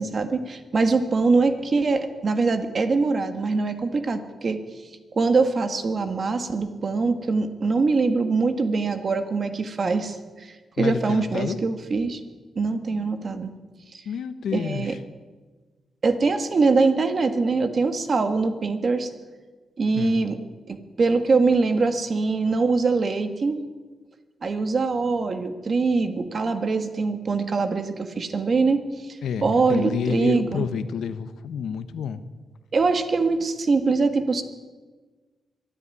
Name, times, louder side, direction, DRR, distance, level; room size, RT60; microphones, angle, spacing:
voice 1, 0.0-4.6 5.1-12.2 12.5-13.5 13.9-14.0 14.5-14.9 16.0-19.1 19.8-20.4 20.7-23.6 24.4-30.7 32.7-34.4, right 4 dB, 40° right, 9 dB, 1.8 m, -23 dB
voice 2, 10.8-11.6 14.0-15.0 20.0-20.2 29.2-32.2, left 7 dB, 90° left, 12 dB, 1.2 m, -29 dB
23.0 x 13.0 x 9.9 m, 1.4 s
wide cardioid pair, 145°, 0 cm